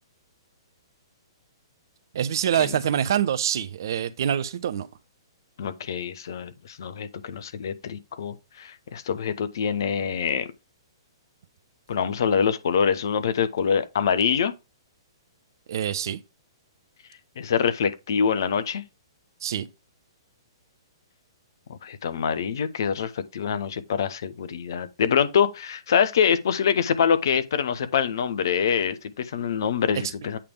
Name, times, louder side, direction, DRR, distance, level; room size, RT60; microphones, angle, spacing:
voice 1, 2.1-4.9 15.7-16.2 19.4-19.7, right 9 dB, 55° right, 0.6 m, -25 dB
voice 2, 5.6-10.5 11.9-14.5 17.4-18.8 21.7-30.4, left 7 dB, 55° left, 1.0 m, -25 dB
8.6 x 3.4 x 5.0 m
figure-of-eight pair, 115°, 2 cm